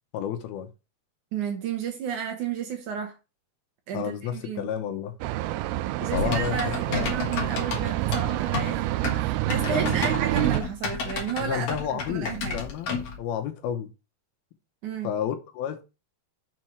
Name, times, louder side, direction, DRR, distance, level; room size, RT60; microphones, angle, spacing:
voice 1, 0.1-0.7 3.9-5.1 6.0-7.2 7.8-7.9 9.7-10.1 11.4-12.9 13.2-13.9 15.0-15.8, left 9 dB, 80° left, 2.8 m, -31 dB
voice 2, 1.3-3.2 3.9-4.7 6.0-8.9 9.2-12.6 14.8-15.1, right 8 dB, 65° right, 2.2 m, -32 dB
sound 1, 5.2-10.6, right 15 dB, 90° right, 2.5 m, -27 dB
Typing, 6.1-13.2, left 4 dB, 50° left, 2.2 m, -32 dB
6.6 x 4.5 x 6.1 m
omnidirectional pair, 4.4 m